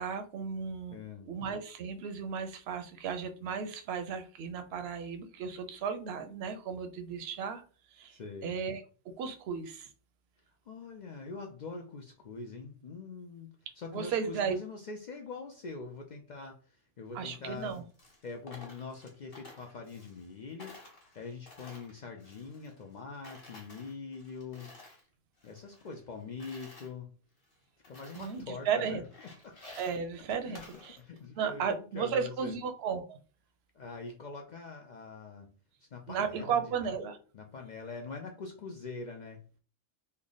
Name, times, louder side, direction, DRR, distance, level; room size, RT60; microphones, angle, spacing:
voice 1, 0.0-1.0 1.3-7.6 7.9-8.8 9.2-9.9 13.9-14.6 17.1-17.8 28.2-29.0 29.8-31.0 31.4-33.2 36.1-37.2, right 6 dB, 65° right, 8 dB, 0.8 m, -35 dB
voice 2, 0.9-1.3 8.1-8.5 10.7-17.8 18.2-24.7 25.4-27.1 27.9-29.1 29.4-29.6 30.4-32.6 33.7-35.5 35.9-36.9 37.3-39.4, left 4 dB, 70° left, 3 dB, 0.4 m, -43 dB
Coin (dropping), 17.5-20.3 20.6-23.0 23.2-25.1 25.4-26.9 27.4-27.5 27.8-28.5 28.8-31.3, left 2 dB, 40° left, 1.2 m, -53 dB
3.3 x 2.1 x 3.8 m, 0.38 s
omnidirectional pair, 1.3 m